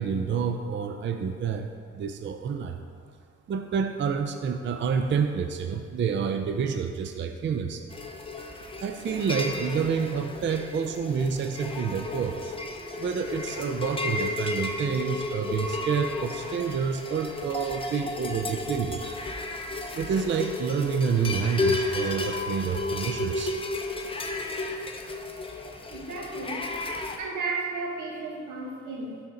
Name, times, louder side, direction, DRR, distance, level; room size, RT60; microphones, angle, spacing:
voice 1, 0.0-1.7 1.9-2.8 3.5-7.8 8.8-12.5 13.0-19.0 19.9-23.8, right 6 dB, 40° right, 5 dB, 0.5 m, -28 dB
sound 1, 7.9-27.2, left 2 dB, 20° left, 0.8 m, -33 dB
voice 2, 25.9-26.7 27.2-29.2, right 3 dB, 85° right, -1 dB, 1.5 m, -34 dB
12.5 x 4.3 x 3.8 m, 2.2 s
cardioid pair, 90°, 30 cm